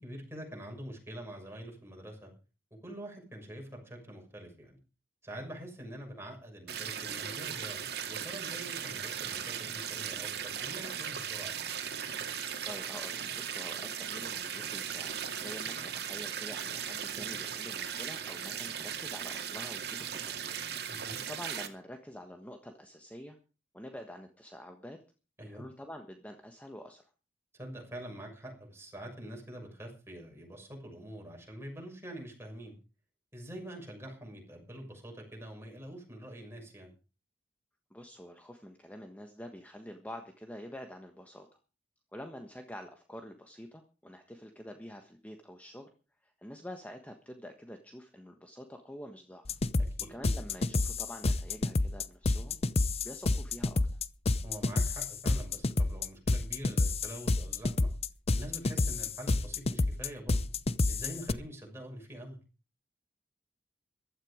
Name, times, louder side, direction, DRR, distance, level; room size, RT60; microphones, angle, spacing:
voice 1, 0.0-2.3 2.8-4.8 5.2-11.5 20.9-21.2 25.4-25.6 27.5-32.7 33.3-36.9 49.8-50.1 54.4-57.9 58.3-60.4 60.9-62.4, equal, 15° right, 1 dB, 6.6 m, -45 dB
sound 1, 6.7-21.7, right 8 dB, 65° right, 2.2 m, -38 dB
voice 2, 12.6-20.5 21.3-23.4 23.7-25.0 25.4-27.1 37.9-41.6 42.1-45.9 46.2-49.6 50.1-52.6 53.0-53.8, equal, 10° left, 5 dB, 1.4 m, -47 dB
sound 2, 49.5-61.3, left 2 dB, 35° left, 0.7 m, -29 dB
15.5 x 12.5 x 5.1 m, 0.35 s
head